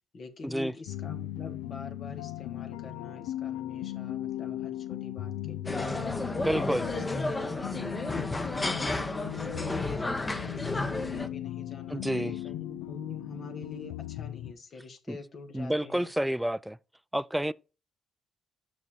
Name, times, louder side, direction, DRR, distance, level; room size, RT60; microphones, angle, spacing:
voice 1, 0.1-8.2 8.6-16.1, left 3 dB, 55° left, 1.6 m, -45 dB
sound 1, 0.9-14.5, left 14 dB, 85° left, 0.3 m, -38 dB
sound 2, 5.6-11.3, left 2 dB, 25° left, 1.0 m, -32 dB
voice 2, 6.4-6.9 11.9-12.3 15.1-15.2 15.5-16.8 17.1-17.5, right 1 dB, 5° right, 0.4 m, -29 dB
6.6 x 4.9 x 4.4 m
hypercardioid pair, 55°, 0 cm